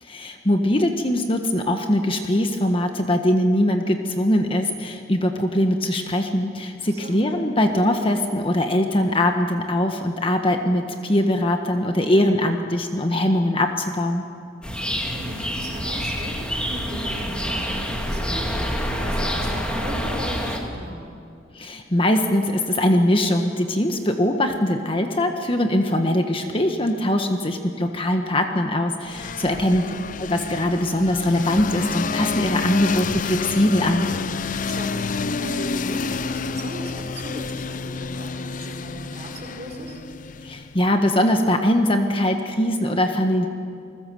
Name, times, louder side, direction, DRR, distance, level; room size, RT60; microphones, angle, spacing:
voice 1, 0.0-14.2 21.5-29.8 30.2-34.1 40.4-43.5, left 1 dB, 30° left, 5 dB, 1.4 m, -21 dB
voice 2, 6.8-7.3 14.8-21.1 29.4-29.7 34.5-40.0, right 1 dB, 35° right, 1 dB, 5.3 m, -37 dB
sound 1, 14.6-20.6, equal, 5° left, 2.5 m, -27 dB
sound 2, 29.1-40.8, left 4 dB, 45° left, 0.5 m, -29 dB
29.0 x 20.5 x 7.8 m, 2.5 s
head